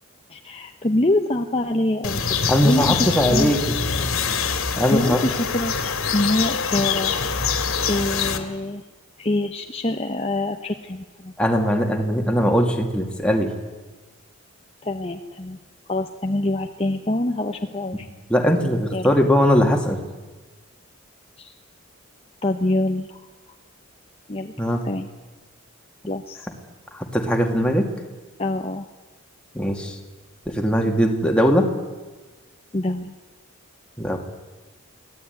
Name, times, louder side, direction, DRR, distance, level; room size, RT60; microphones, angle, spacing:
voice 1, 0.3-2.4 2.6-3.5 4.9-5.7 6.1-7.1 7.8-8.8 9.2-11.3 14.8-15.6 15.9-18.1 18.9-19.1 21.4-21.5 22.4-23.2 24.3-24.5 24.8-25.1 26.1-26.4 28.4-28.8 32.7-33.1, left 1 dB, 25° left, 4 dB, 1.0 m, -25 dB
sound 1, 2.0-8.4, left 6 dB, 70° left, 2.4 m, -24 dB
voice 2, 2.5-3.7 4.8-5.2 11.4-13.5 18.3-20.0 24.6-24.8 26.9-27.9 29.5-30.0 30.5-31.7 34.0-34.2, equal, 5° left, 2 dB, 2.5 m, -20 dB
24.0 x 17.0 x 9.5 m, 1.3 s
head